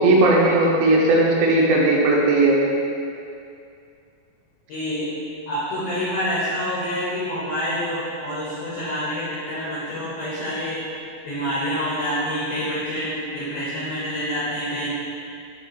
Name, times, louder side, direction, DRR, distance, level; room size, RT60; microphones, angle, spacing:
voice 1, 0.0-2.6, right 2 dB, 85° right, -3 dB, 2.8 m, -17 dB
voice 2, 4.7-5.1 5.5-10.9 11.2-14.9, equal, 70° left, -9 dB, 1.7 m, -27 dB
8.1 x 3.1 x 4.7 m, 2.5 s
omnidirectional pair, 4.3 m